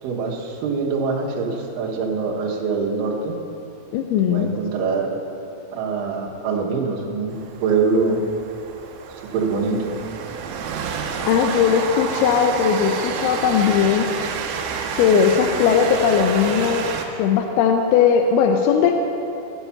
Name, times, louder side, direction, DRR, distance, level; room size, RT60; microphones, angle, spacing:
voice 1, 0.0-3.3 4.3-5.1 5.7-8.2 9.3-10.0, right 4 dB, 70° right, -1 dB, 2.6 m, -24 dB
voice 2, 3.9-4.5 11.3-14.1 15.0-16.9 17.2-19.0, left 7 dB, 85° left, 4 dB, 2.5 m, -18 dB
Train, 7.3-17.0, right 6 dB, 90° right, 2.8 m, -29 dB
14.5 x 5.7 x 5.7 m, 2.8 s
omnidirectional pair, 4.4 m